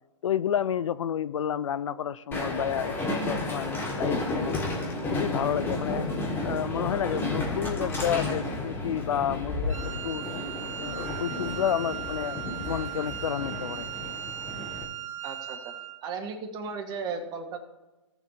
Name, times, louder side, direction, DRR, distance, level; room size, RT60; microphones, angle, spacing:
voice 1, 0.2-4.6 5.1-6.1 6.4-10.2 10.8-13.9, left 9 dB, 70° left, 0.5 m, -30 dB
Train, 2.3-14.8, left 2 dB, 15° left, 1.9 m, -32 dB
Wind instrument woodwind instrument, 9.7-16.0, right 11 dB, 80° right, 0.9 m, -38 dB
voice 2, 15.2-15.7 16.0-17.6, right 5 dB, 25° right, 1.6 m, -35 dB
17.5 x 7.0 x 2.8 m
hypercardioid pair, 140°, 17 cm